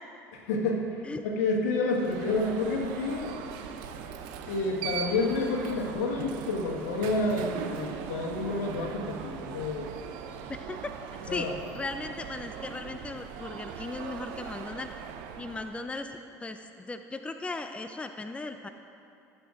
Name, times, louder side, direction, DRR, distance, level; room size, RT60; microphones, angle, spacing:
voice 1, 0.3-3.4 4.5-9.9 11.3-11.5, left 3 dB, 80° left, 0 dB, 1.5 m, -29 dB
Alarm, 1.9-15.8, right 7 dB, 70° right, 0.7 m, -40 dB
voice 2, 10.5-10.9 11.2-11.5 11.8-14.9 15.4-18.7, left 3 dB, 15° left, 8 dB, 0.5 m, -37 dB
17.5 x 7.8 x 2.5 m, 2.7 s
hypercardioid pair, 70°, 8 cm